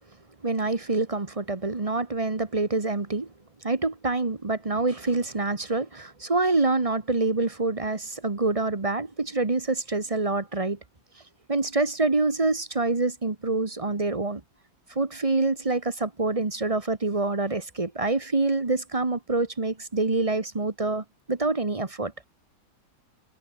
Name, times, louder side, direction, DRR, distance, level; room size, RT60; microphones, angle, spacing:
voice 1, 0.4-3.3 3.6-10.8 11.5-14.4 14.9-22.3, right 3 dB, 20° right, 1.3 m, -26 dB
omnidirectional pair, 1.8 m